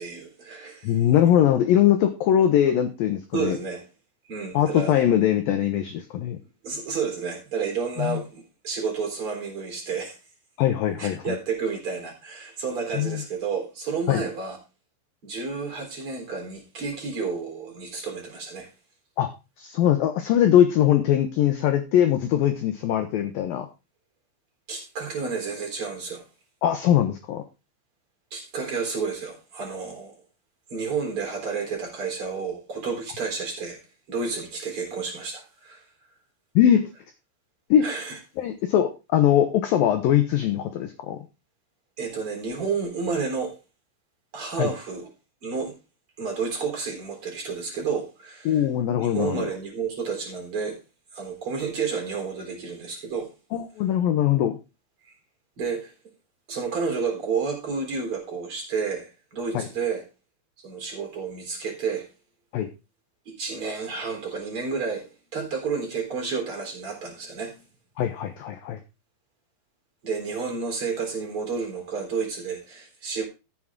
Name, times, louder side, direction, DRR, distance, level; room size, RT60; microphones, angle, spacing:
voice 1, 0.0-0.9 3.3-3.8 4.3-4.9 6.6-10.2 11.0-14.6 15.2-18.7 24.7-26.2 28.3-30.2 30.7-33.8 34.1-35.8 37.8-38.2 42.0-43.5 44.3-45.1 45.4-45.7 46.2-48.6 49.0-50.8 51.1-53.3 55.6-55.9 56.5-60.0 60.6-62.1 63.3-67.6 70.0-73.2, right 5 dB, 30° right, 4.2 m, -30 dB
voice 2, 0.8-3.6 4.5-6.4 8.0-8.2 10.6-11.4 12.9-13.2 14.1-14.2 19.2-19.3 19.6-23.7 26.6-27.4 36.6-36.8 37.7-37.9 38.4-41.2 44.6-44.7 48.5-49.5 53.5-54.6 59.5-59.7 62.5-62.7 68.0-68.8, left 10 dB, 85° left, 2.0 m, -21 dB
14.0 x 7.5 x 3.7 m
omnidirectional pair, 5.4 m